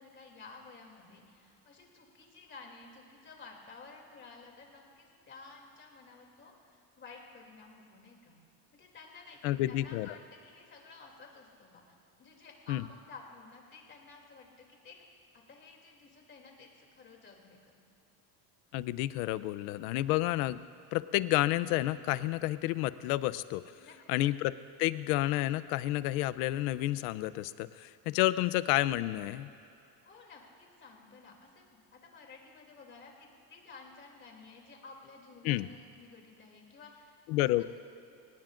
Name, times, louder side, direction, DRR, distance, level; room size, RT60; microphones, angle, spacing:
voice 1, 0.0-8.4 8.7-11.8 12.2-15.0 15.3-17.9 23.8-24.2 30.0-37.6, left 4 dB, 25° left, 0 dB, 2.8 m, -53 dB
voice 2, 9.4-10.1 12.7-12.8 18.7-20.6 20.9-23.6 24.1-24.5 24.8-29.5 35.4-35.7 37.3-37.6, left 16 dB, 85° left, 15 dB, 0.7 m, -30 dB
28.5 x 18.0 x 2.6 m, 2.7 s
cardioid pair, 145°, 43 cm